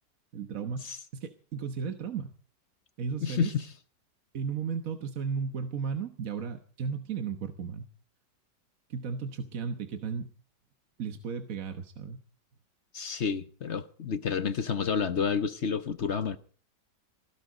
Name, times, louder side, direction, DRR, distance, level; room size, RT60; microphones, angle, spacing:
voice 1, 0.3-2.3 3.0-3.5 4.3-7.9 8.9-10.3 11.0-12.2, right 6 dB, 55° right, 1.5 m, -35 dB
voice 2, 3.2-3.7 12.9-16.4, left 6 dB, 50° left, 1.0 m, -30 dB
19.0 x 17.0 x 3.9 m
omnidirectional pair, 1.9 m